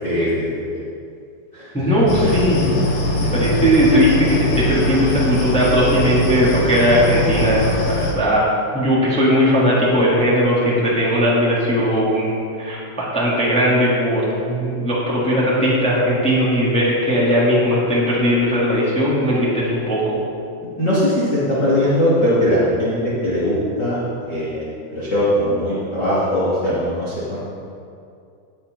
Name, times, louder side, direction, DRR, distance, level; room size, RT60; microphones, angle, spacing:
voice 1, 0.0-0.5 1.5-1.7 20.8-23.0 23.2-24.0 24.3-27.4, equal, 30° left, -10 dB, 2.1 m, -20 dB
voice 2, 1.7-2.7 3.2-7.7 8.0-20.2, equal, ahead, -8 dB, 2.0 m, -18 dB
sound 1, 2.1-8.1, left 1 dB, 65° left, 4.5 m, -22 dB
19.0 x 8.9 x 4.2 m, 2.4 s
omnidirectional pair, 6.0 m